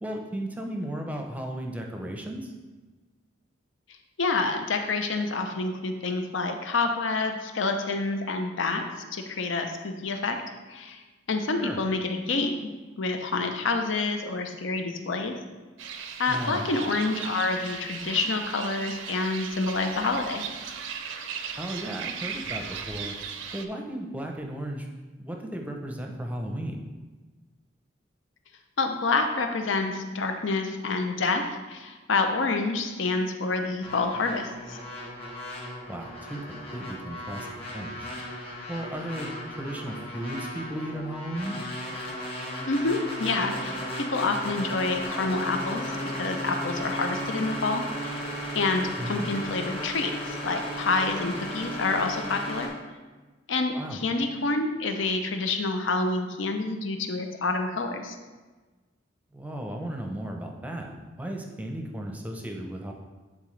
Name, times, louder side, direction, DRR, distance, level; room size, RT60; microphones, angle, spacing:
voice 1, 0.0-2.5 11.6-11.8 16.3-16.7 21.6-23.2 23.5-24.9 25.2-26.9 35.9-38.1 38.7-39.3 39.6-41.6 49.0-49.3 53.7-54.0 59.3-62.9, right 1 dB, 10° right, 2 dB, 0.6 m, -35 dB
voice 2, 4.2-8.8 9.1-10.4 10.7-11.0 11.3-12.7 13.0-15.3 16.2-20.5 28.8-34.8 42.7-48.2 48.5-52.7 53.5-58.2, left 3 dB, 75° left, 5 dB, 0.7 m, -28 dB
sound 1, 15.8-23.7, right 6 dB, 80° right, 0.5 m, -37 dB
sound 2, 33.8-52.7, equal, 30° left, 1.8 m, -35 dB
11.5 x 3.8 x 3.2 m, 1.3 s
head